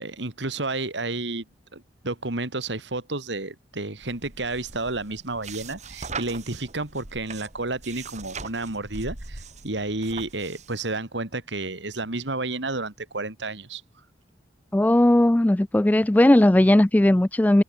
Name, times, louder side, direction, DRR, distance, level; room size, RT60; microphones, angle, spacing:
voice 1, 0.0-1.4 1.7-13.8, right 2 dB, 80° right, 2.7 m, -31 dB
sound 1, 4.0-10.8, right 4 dB, 40° right, 2.1 m, -40 dB
voice 2, 14.7-17.6, left 1 dB, 10° left, 0.3 m, -17 dB
head